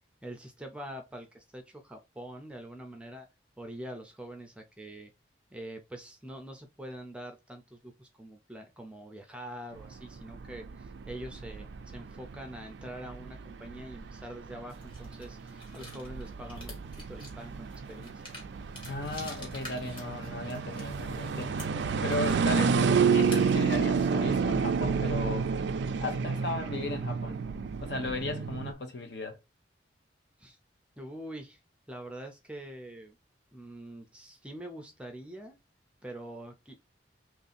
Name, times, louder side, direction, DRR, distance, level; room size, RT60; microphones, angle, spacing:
voice 1, 0.2-3.3 3.6-5.1 5.5-18.2 30.4-30.6 31.0-31.6 31.9-33.2 33.5-35.6 36.0-36.8, right 1 dB, 5° right, 0.5 m, -44 dB
sound 1, 9.8-28.7, right 5 dB, 65° right, 0.4 m, -30 dB
cat eating, 14.7-23.8, left 1 dB, 25° left, 1.5 m, -50 dB
voice 2, 18.8-21.7 22.0-25.5 26.0-27.4 27.8-29.4, left 2 dB, 60° left, 0.8 m, -36 dB
3.1 x 2.7 x 4.0 m
head